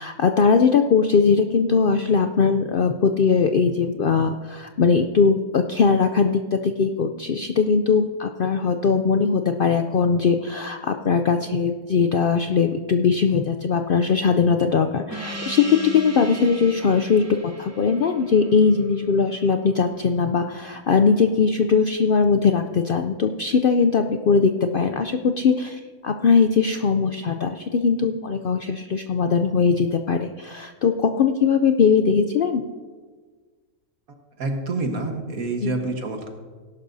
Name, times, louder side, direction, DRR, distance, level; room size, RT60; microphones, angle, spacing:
voice 1, 0.0-32.6 35.6-35.8, left 5 dB, 70° left, 6 dB, 0.5 m, -20 dB
Gong, 15.1-20.1, right 1 dB, 10° right, 0.9 m, -38 dB
voice 2, 34.4-36.3, right 2 dB, 75° right, 4 dB, 1.7 m, -27 dB
18.0 x 11.5 x 2.7 m, 1.4 s
omnidirectional pair, 1.5 m